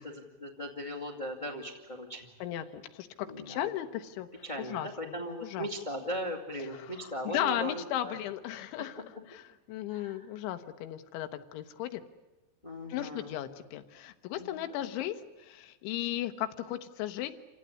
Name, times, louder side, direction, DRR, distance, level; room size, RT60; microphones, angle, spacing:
voice 1, 0.0-2.3 3.3-3.7 4.4-8.1 9.9-10.2 12.6-13.5 14.3-14.9, equal, 45° left, 1 dB, 0.5 m, -39 dB
voice 2, 2.4-5.2 5.4-5.7 6.7-12.0 12.9-17.4, left 12 dB, 85° left, 8 dB, 3.5 m, -36 dB
28.0 x 16.5 x 9.7 m, 1.1 s
omnidirectional pair, 5.4 m